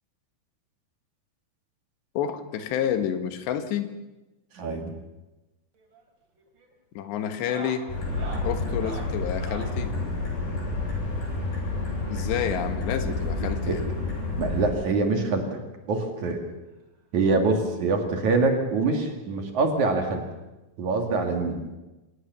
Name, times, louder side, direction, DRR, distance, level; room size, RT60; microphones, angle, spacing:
voice 1, 2.2-3.9 7.0-7.9 8.4-9.9 12.1-13.8, left 9 dB, 90° left, 8 dB, 3.7 m, -29 dB
voice 2, 4.5-4.9 13.4-13.8 14.4-15.5 15.9-16.4 17.1-20.2 20.8-21.6, right 3 dB, 50° right, 4 dB, 3.1 m, -25 dB
sound 1, 5.7-6.1 6.4-6.7 7.3-9.8 11.1-12.5 13.5-13.6 13.8-14.0 14.4-14.5 15.8-15.9 17.2-17.3, right 4 dB, 30° right, 3.0 m, -44 dB
sound 2, 7.9-14.7, left 2 dB, 60° left, 9.5 m, -29 dB
26.5 x 18.0 x 6.9 m, 1.0 s
omnidirectional pair, 4.9 m